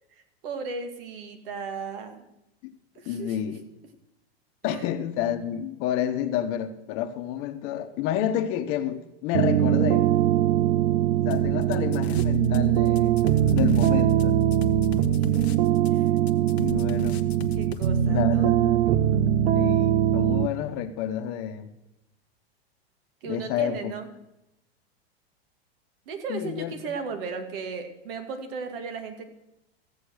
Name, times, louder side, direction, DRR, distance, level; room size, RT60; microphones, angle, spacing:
voice 1, 0.4-2.3 3.0-3.6 4.6-4.9 15.1-15.4 15.9-16.1 17.5-18.5 23.2-24.1 26.1-29.2, right 5 dB, 60° right, 2.3 m, -36 dB
voice 2, 3.0-3.6 4.6-10.1 11.2-13.2 13.5-14.4 16.6-17.2 18.1-18.9 19.5-21.7 23.2-23.9 26.3-26.7, left 10 dB, 45° left, 1.2 m, -29 dB
sound 1, 9.3-20.5, right 10 dB, 75° right, 0.9 m, -22 dB
sound 2, 11.3-12.6 12.9-17.9, left 8 dB, 85° left, 1.1 m, -38 dB
15.0 x 7.6 x 6.5 m
hypercardioid pair, 130°, 31 cm